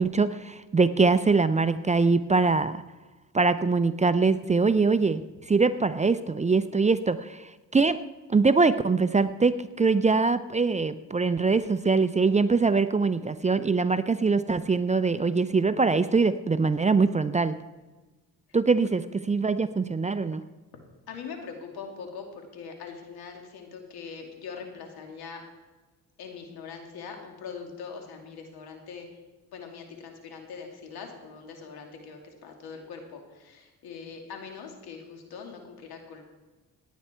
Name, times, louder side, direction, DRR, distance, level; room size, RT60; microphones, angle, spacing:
voice 1, 0.0-2.8 3.3-5.2 5.5-7.4 7.7-8.0 8.3-17.5 18.5-20.4, right 4 dB, 20° right, 12 dB, 0.5 m, -23 dB
voice 2, 21.1-25.4 26.2-29.1 29.5-36.2, left 5 dB, 80° left, 3 dB, 2.6 m, -42 dB
17.5 x 9.4 x 4.4 m, 1.2 s
cardioid pair, 80°, 37 cm